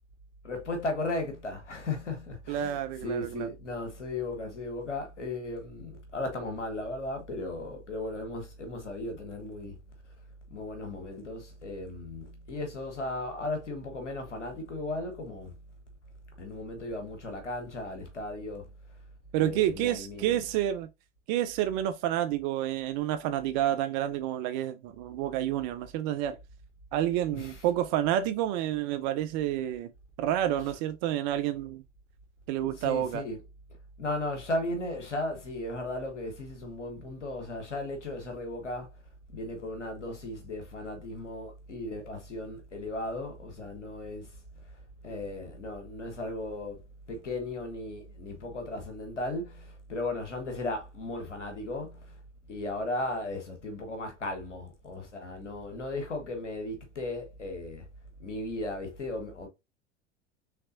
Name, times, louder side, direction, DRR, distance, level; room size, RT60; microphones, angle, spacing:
voice 1, 0.4-9.8 10.0-10.1 10.5-15.6 16.4-18.7 19.4-20.4 27.3-27.6 30.6-30.7 32.6-33.4 34.0-39.0 39.3-44.4 44.7-52.2 52.5-57.9 58.2-59.5, left 2 dB, 80° left, 1.2 m, -36 dB
voice 2, 2.5-3.5 19.3-20.9 21.3-26.4 26.9-29.9 30.2-31.8 32.5-33.2, right 12 dB, 40° right, 0.5 m, -29 dB
5.7 x 3.3 x 2.5 m
figure-of-eight pair, 75°, 36 cm